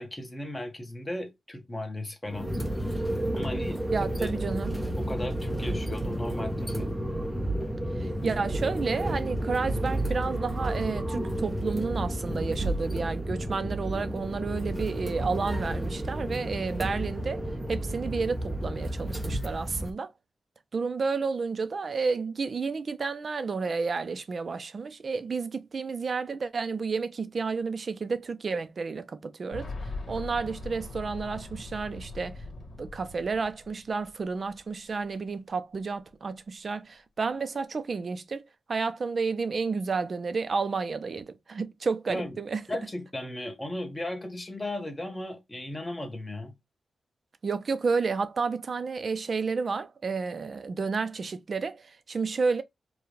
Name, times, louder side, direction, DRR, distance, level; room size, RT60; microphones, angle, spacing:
voice 1, 0.0-3.0 3.3-4.3 5.0-6.9 42.1-42.4 42.7-46.6, left 1 dB, 20° left, 1.3 m, -36 dB
sound 1, 2.3-19.9, right 1 dB, 5° right, 0.7 m, -31 dB
voice 2, 3.9-4.7 8.0-20.1 20.7-29.7 30.1-32.4 32.8-38.4 38.7-42.6 47.4-52.6, right 4 dB, 50° right, 0.6 m, -31 dB
Boom, 29.5-34.3 34.5-34.6 35.7-35.8, left 2 dB, 55° left, 1.7 m, -40 dB
4.7 x 2.4 x 3.2 m
wide cardioid pair, 90°, 0 cm